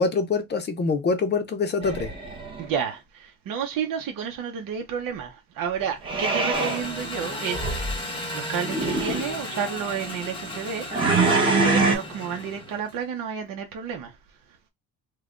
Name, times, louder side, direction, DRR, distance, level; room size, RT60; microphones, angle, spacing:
voice 1, 0.0-2.1, left 4 dB, 30° left, 0.7 m, -24 dB
sound 1, 1.8-2.7 6.0-6.8 7.5-8.0 8.6-9.3 10.9-12.0, right 3 dB, 15° right, 1.0 m, -23 dB
voice 2, 2.6-14.1, right 7 dB, 65° right, 0.8 m, -31 dB
Engine, 6.5-13.0, left 1 dB, 15° left, 1.0 m, -35 dB
3.2 x 2.3 x 3.7 m
cardioid pair, 140°, 35 cm